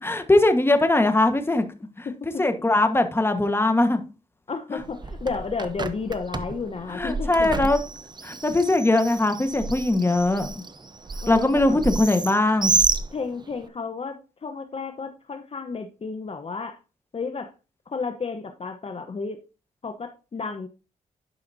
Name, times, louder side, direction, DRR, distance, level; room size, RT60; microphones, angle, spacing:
voice 1, 0.0-1.6 2.0-2.1 2.4-4.0 4.7-4.8 6.9-7.8 8.2-10.6 11.3-12.7, left 2 dB, 15° left, 1.4 m, -21 dB
voice 2, 2.0-2.4 4.5-7.5 11.2-11.8 13.1-16.8 17.1-17.5 17.9-19.4 19.8-20.7, left 4 dB, 40° left, 1.0 m, -32 dB
Bird, 4.8-13.7, right 3 dB, 30° right, 0.8 m, -30 dB
11.0 x 5.7 x 2.7 m
cardioid pair, 65°, 15 cm